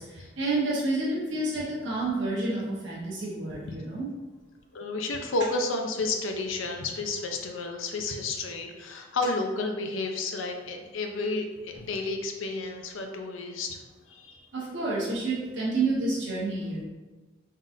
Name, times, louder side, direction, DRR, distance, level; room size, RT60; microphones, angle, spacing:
voice 1, 0.0-4.1 14.5-16.8, right 2 dB, 70° right, -6 dB, 1.1 m, -29 dB
voice 2, 4.7-13.8 14.1-14.5, left 3 dB, 80° left, 3 dB, 0.5 m, -31 dB
3.9 x 3.7 x 2.6 m, 1.2 s
head